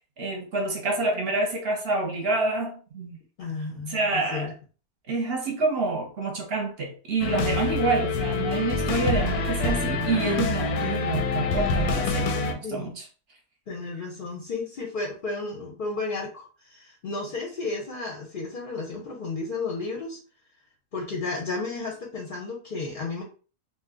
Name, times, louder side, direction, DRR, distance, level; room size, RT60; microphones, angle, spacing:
voice 1, 0.2-3.2 3.9-4.5 5.1-13.0, right 3 dB, 50° right, 0.9 m, -27 dB
voice 2, 3.4-4.5 12.6-12.9 13.7-20.2 20.9-23.2, left 3 dB, 55° left, 0.6 m, -33 dB
Food and Drug, 7.2-12.5, left 4 dB, 90° left, 1.1 m, -26 dB
2.8 x 2.2 x 3.6 m
omnidirectional pair, 1.6 m